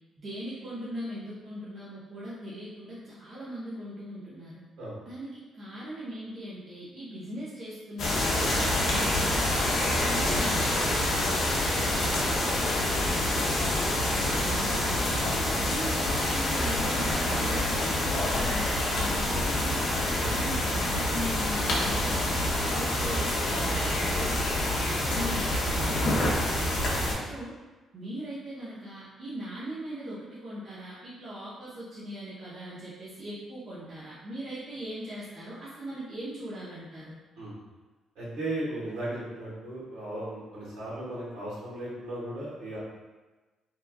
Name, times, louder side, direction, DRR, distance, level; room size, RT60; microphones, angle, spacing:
voice 1, 0.2-4.6 5.0-8.6 8.9-19.9 20.2-26.9 27.2-27.5 27.9-37.2, right 1 dB, 40° right, -9 dB, 0.7 m, -40 dB
sound 1, 8.0-27.1, left 1 dB, 65° left, 0.6 m, -27 dB
voice 2, 38.1-42.8, right 1 dB, 85° right, -7 dB, 1.1 m, -36 dB
3.0 x 2.3 x 2.2 m, 1.2 s
cardioid pair, 90°, 0 cm